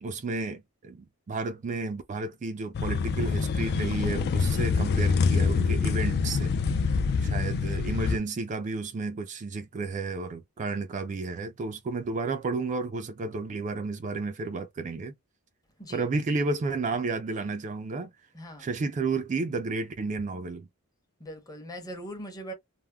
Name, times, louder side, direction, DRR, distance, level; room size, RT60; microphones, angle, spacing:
voice 1, 0.0-6.5 7.2-15.1 15.9-18.1 18.6-20.7, right 3 dB, 35° right, 0.3 m, -32 dB
sound 1, 2.7-8.2, left 5 dB, 50° left, 0.3 m, -25 dB
voice 2, 6.6-7.5 15.8-16.0 18.3-18.7 21.2-22.5, equal, 15° left, 0.8 m, -42 dB
3.4 x 2.0 x 2.2 m
head